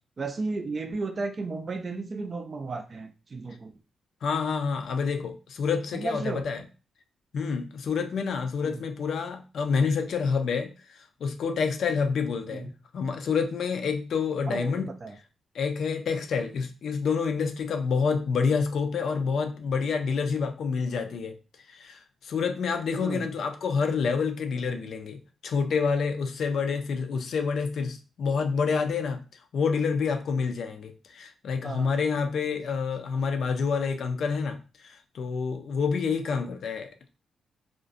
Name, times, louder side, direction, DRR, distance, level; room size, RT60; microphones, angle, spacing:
voice 1, 0.2-3.7 5.9-6.4 8.6-8.7 12.5-12.7 14.5-14.7 15.0-15.1 23.0-23.2 31.6-31.9, right 3 dB, 35° right, 7 dB, 0.3 m, -33 dB
voice 2, 4.2-6.6 7.3-14.9 15.5-21.4 21.7-29.2 29.5-37.1, left 5 dB, 65° left, 7 dB, 0.4 m, -28 dB
2.4 x 2.1 x 2.5 m, 0.34 s
cardioid pair, 130°, 0 cm